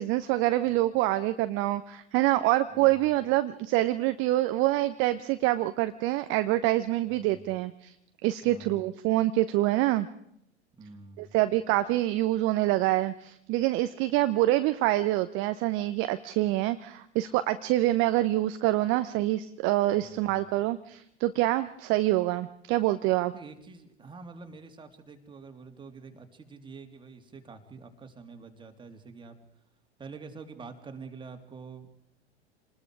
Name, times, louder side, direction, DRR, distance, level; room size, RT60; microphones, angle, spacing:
voice 1, 0.0-7.9 8.2-10.1 11.2-23.3, right 16 dB, 35° right, 12 dB, 1.0 m, -26 dB
voice 2, 2.7-3.1 7.0-7.4 8.4-8.8 10.8-11.3 19.9-20.4 23.3-29.4 30.0-31.9, right 4 dB, 15° right, 5 dB, 3.1 m, -47 dB
28.0 x 20.5 x 4.9 m, 0.74 s
figure-of-eight pair, 90°, 34 cm